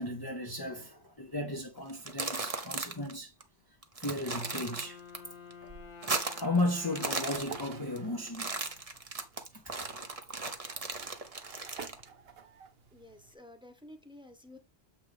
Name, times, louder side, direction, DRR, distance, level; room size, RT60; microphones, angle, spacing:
voice 1, 0.0-3.3 4.0-5.0 6.4-8.6 9.5-9.7, left 1 dB, 25° left, 0.8 m, -35 dB
sound 1, 1.9-3.1 3.4-3.5 3.8-5.2 5.5-6.6 6.8-8.0 8.3-12.0, right 3 dB, 35° right, 1.1 m, -36 dB
Wind instrument woodwind instrument, 4.1-8.9, left 5 dB, 50° left, 1.4 m, -51 dB
sound 2, 5.1-13.3, right 6 dB, 65° right, 1.0 m, -52 dB
voice 2, 12.9-14.6, left 1 dB, 5° right, 1.2 m, -52 dB
7.7 x 5.5 x 3.5 m
omnidirectional pair, 1.1 m